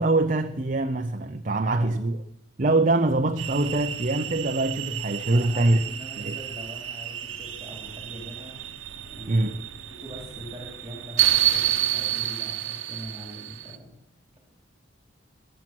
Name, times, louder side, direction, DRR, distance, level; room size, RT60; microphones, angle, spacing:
voice 1, 0.0-2.2 2.6-5.8 6.2-6.4 9.3-9.5, right 2 dB, 40° right, 0.6 m, -23 dB
sound 1, 3.4-13.8, right 12 dB, 85° right, 0.9 m, -30 dB
voice 2, 5.3-8.6 9.1-9.5 9.9-13.9, equal, 15° right, 3.2 m, -42 dB
21.5 x 7.6 x 6.1 m
head